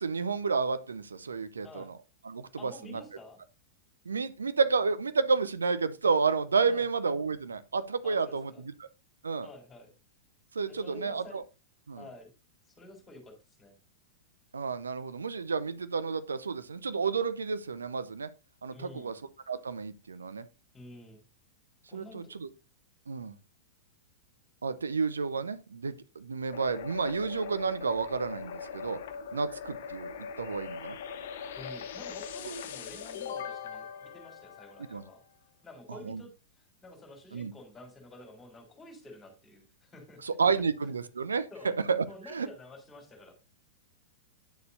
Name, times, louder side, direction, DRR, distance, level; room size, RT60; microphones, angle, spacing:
voice 1, 0.0-1.9 2.2-3.0 4.0-8.7 9.2-9.5 10.5-11.4 11.9-12.0 14.5-18.3 18.6-19.1 19.5-20.5 21.9-22.5 23.1-23.4 24.6-29.0 29.3-31.0 32.5-32.6 34.9-35.0 35.9-36.2 37.3-37.5 40.2-41.5 41.9-42.5, right 5 dB, 75° right, 0.7 m, -31 dB
voice 2, 2.6-3.4 6.7-6.9 8.0-8.6 9.4-9.9 10.7-11.4 12.0-12.3 12.8-13.8 18.7-19.1 20.7-21.2 21.9-22.2 31.6-35.2 35.6-40.2 41.5-41.7 42.1-43.3, left 2 dB, 15° left, 3.8 m, -50 dB
sound 1, 26.5-35.2, left 6 dB, 55° left, 1.0 m, -41 dB
10.5 x 6.8 x 2.7 m
figure-of-eight pair, 100°, 0 cm